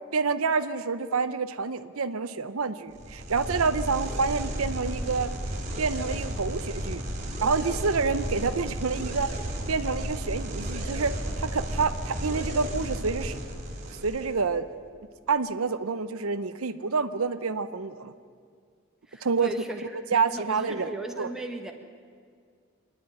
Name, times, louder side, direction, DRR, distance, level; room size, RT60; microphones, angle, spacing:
voice 1, 0.1-5.3 5.8-7.0 7.4-9.3 9.7-13.4 14.0-14.7 15.3-18.1 19.2-19.5 20.1-21.3, right 4 dB, 85° right, 12 dB, 0.8 m, -28 dB
sound 1, 2.9-14.4, right 1 dB, 35° right, 3.0 m, -33 dB
voice 2, 19.1-19.8 20.1-21.7, right 1 dB, ahead, 2 dB, 1.4 m, -37 dB
26.0 x 10.0 x 10.0 m, 2.1 s
head